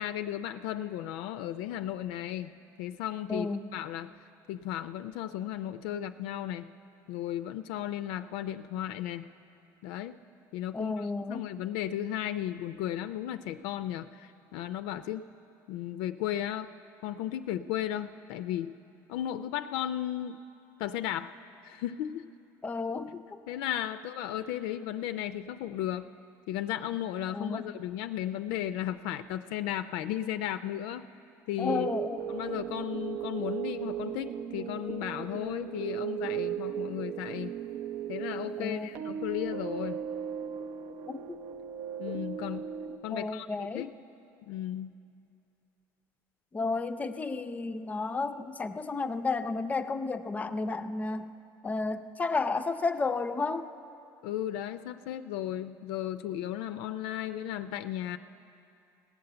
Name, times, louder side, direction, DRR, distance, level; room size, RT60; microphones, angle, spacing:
voice 1, 0.0-2.5 2.8-4.1 4.5-6.7 7.1-9.3 9.8-10.2 10.5-15.2 15.7-16.7 17.0-18.7 19.1-20.4 20.8-21.3 21.6-22.3 23.5-26.1 26.5-31.1 31.5-31.9 32.3-37.5 38.1-40.0 42.0-42.7 43.0-43.9 44.5-44.9 54.2-58.2, left 11 dB, 85° left, 10 dB, 0.4 m, -35 dB
voice 2, 3.3-3.8 10.7-11.5 22.6-23.2 27.3-27.7 31.6-32.2 38.6-38.9 41.1-41.2 43.1-43.8 46.5-51.3 51.6-53.7, left 3 dB, 20° left, 9 dB, 0.4 m, -32 dB
sound 1, 31.7-43.0, right 9 dB, 70° right, 0.6 m, -36 dB
18.0 x 7.9 x 6.8 m, 2.6 s
cardioid pair, 135°, 8 cm